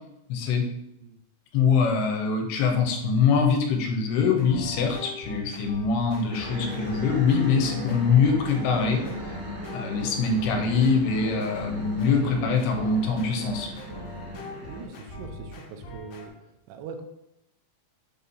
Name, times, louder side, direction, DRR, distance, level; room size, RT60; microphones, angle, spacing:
voice 1, 0.3-0.7 1.5-9.0 9.7-13.7, left 5 dB, 80° left, 2 dB, 2.8 m, -23 dB
sound 1, 4.4-16.3, left 1 dB, 60° left, 1.9 m, -42 dB
sound 2, 6.3-14.9, equal, 70° right, 1.5 m, -38 dB
voice 2, 14.7-16.3 16.7-17.0, right 5 dB, 90° right, 5 dB, 2.8 m, -41 dB
6.8 x 2.8 x 5.4 m, 0.85 s
omnidirectional pair, 4.6 m